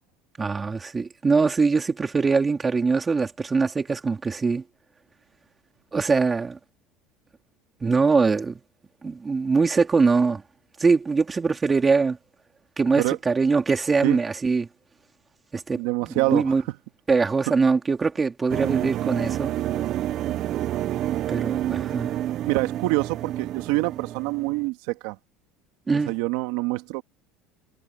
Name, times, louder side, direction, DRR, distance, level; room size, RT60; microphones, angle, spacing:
voice 1, 0.4-4.6 5.9-6.6 7.8-8.6 9.0-10.4 10.8-12.2 12.8-14.7 15.5-16.6 17.1-19.5 21.3-22.1 25.9-26.1, right 4 dB, 20° right, 3.3 m, -22 dB
voice 2, 15.7-16.5 20.3-20.5 22.5-25.2 26.1-27.0, right 22 dB, 75° right, 2.0 m, -26 dB
sound 1, 18.5-24.7, right 12 dB, 50° right, 0.7 m, -28 dB
supercardioid pair, 115°, 0 cm